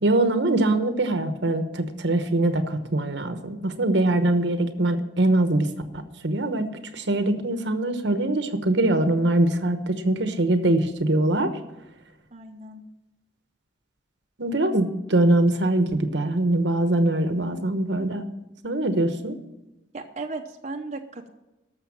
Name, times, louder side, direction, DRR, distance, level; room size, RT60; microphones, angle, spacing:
voice 1, 0.0-5.7 5.9-6.7 6.9-11.5 14.4-18.3 18.6-19.4, right 2 dB, 70° right, 8 dB, 1.1 m, -23 dB
voice 2, 12.3-12.8 19.9-21.3, right 3 dB, 35° right, 2 dB, 0.9 m, -36 dB
13.5 x 6.3 x 7.6 m, 1.0 s
head